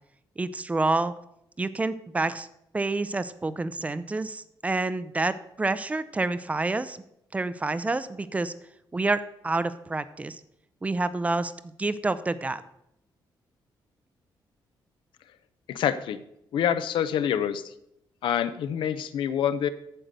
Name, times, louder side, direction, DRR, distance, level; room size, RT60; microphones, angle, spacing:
voice 1, 0.4-1.1 1.6-2.5 2.7-7.0 7.3-8.5 8.9-10.4 10.8-11.5 11.8-12.6, right 3 dB, 15° right, 14 dB, 0.5 m, -28 dB
voice 2, 15.7-16.2 16.5-17.7 18.2-19.7, left 9 dB, 80° left, 13 dB, 0.7 m, -26 dB
8.9 x 7.6 x 6.7 m, 0.78 s
cardioid pair, 150°, 8 cm